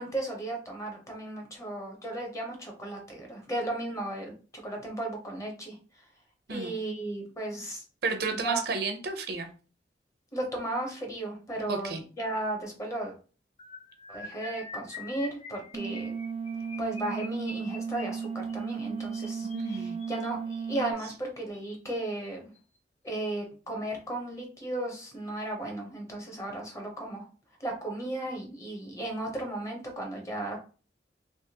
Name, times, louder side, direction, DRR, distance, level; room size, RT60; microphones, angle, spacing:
voice 1, 0.0-4.3 4.6-5.7 6.5-7.8 8.4-8.6 10.3-13.2 14.1-16.1 16.8-22.5 23.0-27.2 27.6-30.6, right 1 dB, 20° left, 2 dB, 0.9 m, -35 dB
voice 2, 8.0-9.5 11.7-12.0 19.4-20.0, right 4 dB, 65° right, 6 dB, 0.6 m, -32 dB
sound 1, 13.6-20.8 21.5-21.8 22.0-22.3 22.5-22.8, left 3 dB, 40° left, 0.6 m, -46 dB
sound 2, 15.7-20.9, right 6 dB, 30° right, 0.3 m, -35 dB
3.4 x 3.0 x 2.9 m, 0.37 s
head